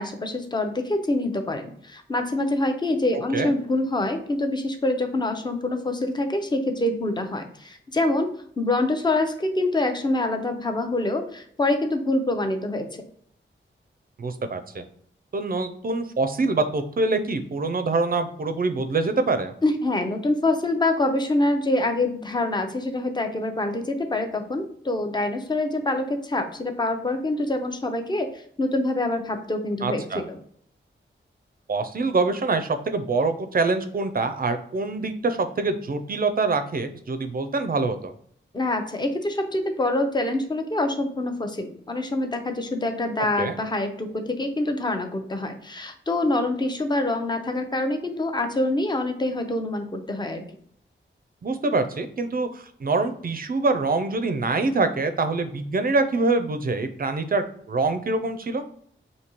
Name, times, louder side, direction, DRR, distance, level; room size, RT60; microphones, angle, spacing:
voice 1, 0.0-8.3 8.6-13.1 19.6-30.4 38.5-50.4, left 2 dB, 20° left, 6 dB, 0.6 m, -25 dB
voice 2, 14.2-14.8 15.3-19.5 29.8-30.2 31.7-38.1 43.4-43.6 51.4-58.6, right 3 dB, 45° right, 9 dB, 0.4 m, -25 dB
5.1 x 2.7 x 2.9 m, 0.64 s
wide cardioid pair, 80°, 21 cm